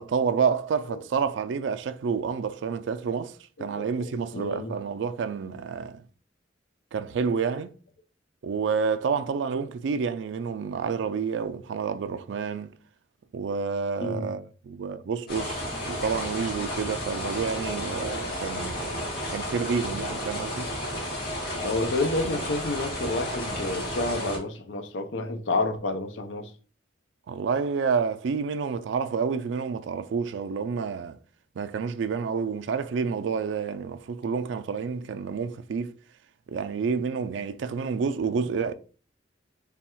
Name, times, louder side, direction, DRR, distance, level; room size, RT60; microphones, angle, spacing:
voice 1, 0.0-6.0 6.9-7.7 8.4-12.7 13.3-20.7 27.3-31.2 31.6-35.9 36.5-38.7, right 5 dB, 80° right, 0.3 m, -29 dB
voice 2, 3.6-4.8 14.0-14.3 21.6-26.5, left 2 dB, 85° left, 0.6 m, -30 dB
sound 1, 15.3-24.4, equal, 60° left, 2.0 m, -32 dB
3.4 x 2.3 x 4.3 m
head